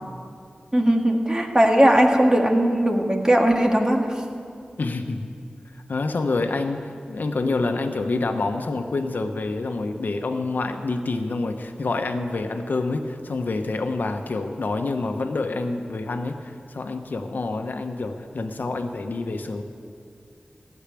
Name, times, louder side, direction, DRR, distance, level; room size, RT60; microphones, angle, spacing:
voice 1, 0.7-4.1, right 1 dB, 20° right, 2 dB, 1.9 m, -18 dB
voice 2, 4.8-5.3 5.7-19.6, left 3 dB, 75° left, 6 dB, 1.0 m, -27 dB
15.5 x 7.3 x 9.8 m, 2.3 s
wide cardioid pair, 55°, 3 cm